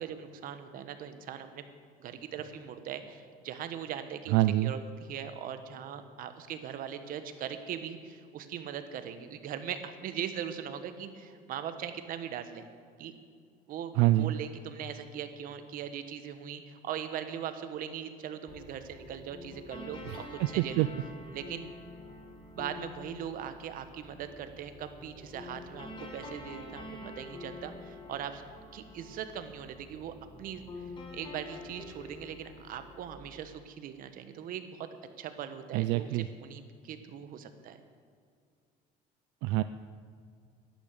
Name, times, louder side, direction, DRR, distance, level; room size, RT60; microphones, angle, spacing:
voice 1, 0.0-1.6 2.0-4.3 4.6-4.8 5.1-12.6 13.0-13.1 13.7-20.0 20.3-20.9 21.3-21.7 22.5-26.9 27.2-28.4 28.7-30.9 31.1-34.9 35.2-36.1 36.4-37.8, right 9 dB, 60° right, 9 dB, 1.2 m, -40 dB
voice 2, 4.3-4.7 13.9-14.3 20.0-20.9 35.7-36.3 39.4-39.6, right 17 dB, 85° right, 12 dB, 0.4 m, -26 dB
sound 1, 18.5-33.1, left 2 dB, 30° left, 2.0 m, -47 dB
11.5 x 10.5 x 6.8 m, 2.2 s
cardioid pair, 120°, 16 cm